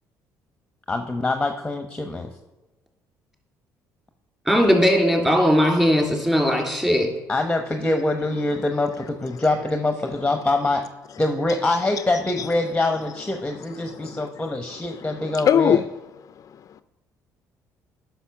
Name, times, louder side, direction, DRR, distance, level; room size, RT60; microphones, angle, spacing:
voice 1, 0.9-2.3 7.3-10.8 11.2-15.8, left 2 dB, 15° left, 5 dB, 0.8 m, -24 dB
voice 2, 4.5-7.1, equal, 5° right, 1 dB, 3.0 m, -18 dB
voice 3, 13.8-15.9 16.3-16.8, left 9 dB, 50° left, 13 dB, 0.4 m, -25 dB
10.0 x 5.8 x 5.8 m, 1.1 s
supercardioid pair, 75°, 7 cm